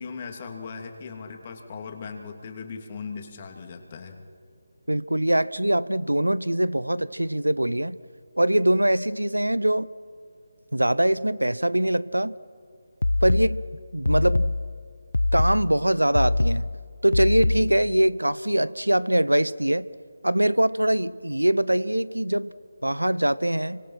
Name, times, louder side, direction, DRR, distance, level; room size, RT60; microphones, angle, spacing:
voice 1, 0.0-4.2, left 5 dB, 35° left, 4 dB, 2.9 m, -38 dB
voice 2, 4.9-8.0 8.4-9.9 10.7-12.3 13.2-13.6 13.9-14.5 15.3-16.7 17.0-19.9 20.2-22.5 22.8-23.8, right 1 dB, 90° right, 19 dB, 0.7 m, -23 dB
sound 1, 13.0-18.0, left 2 dB, 75° left, 0.5 m, -25 dB
29.5 x 25.0 x 5.9 m, 2.2 s
figure-of-eight pair, 155°, 0 cm